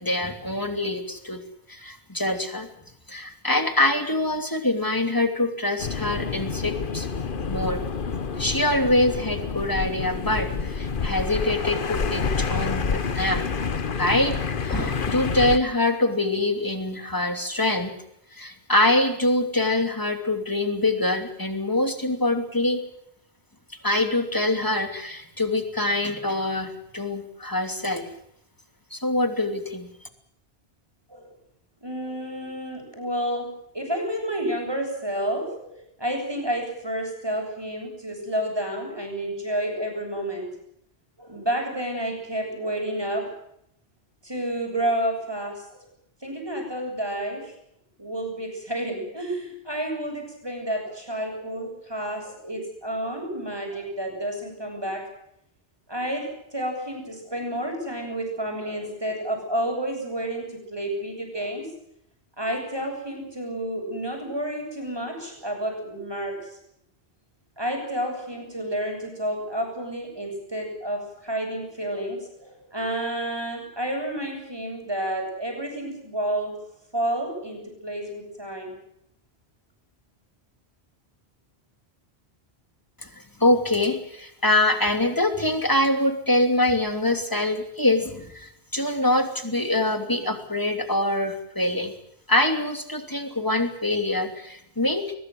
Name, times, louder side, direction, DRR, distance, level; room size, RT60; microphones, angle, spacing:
voice 1, 0.0-1.4 1.7-2.7 3.1-7.1 7.5-7.8 8.4-13.5 14.0-17.9 18.3-22.8 23.8-28.1 28.9-29.9 83.4-91.9 92.3-95.1, left 1 dB, 20° left, 7 dB, 3.0 m, -24 dB
sound 1, 5.8-15.6, left 5 dB, 55° left, 1.3 m, -28 dB
voice 2, 31.8-40.5 41.2-43.3 44.2-45.9 46.2-47.5 48.0-55.1 55.9-61.7 62.4-66.6 67.6-76.5 76.9-78.8, right 1 dB, 25° right, 2 dB, 7.9 m, -30 dB
22.0 x 21.0 x 7.9 m, 0.75 s
omnidirectional pair, 1.1 m